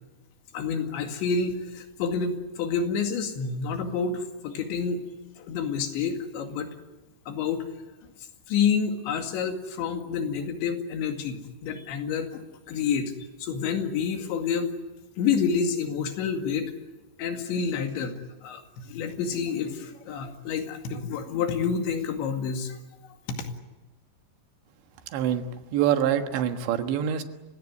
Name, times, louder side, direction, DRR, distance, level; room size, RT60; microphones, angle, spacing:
voice 1, 0.5-5.1 5.4-6.7 7.3-7.7 8.5-12.4 12.7-13.1 13.4-14.7 15.2-16.7 17.2-18.1 18.4-22.8 23.3-23.5, left 6 dB, 80° left, 5 dB, 4.4 m, -28 dB
voice 2, 25.1-25.4 25.7-27.2, right 10 dB, 80° right, 7 dB, 3.7 m, -25 dB
29.5 x 17.0 x 9.7 m, 1.1 s
omnidirectional pair, 5.2 m